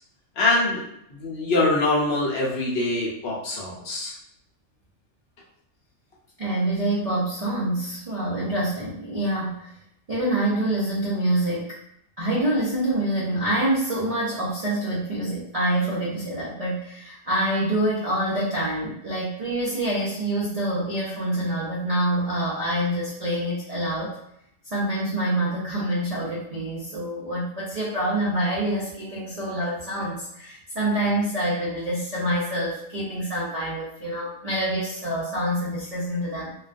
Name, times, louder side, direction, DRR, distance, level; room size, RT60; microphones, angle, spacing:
voice 1, 0.4-0.8 1.1-4.2, left 2 dB, 60° left, -4 dB, 0.8 m, -24 dB
voice 2, 6.4-9.7 10.1-11.8 12.2-24.2 24.7-36.5, right 1 dB, 60° right, -7 dB, 0.4 m, -26 dB
2.3 x 2.2 x 2.4 m, 0.75 s
omnidirectional pair, 1.3 m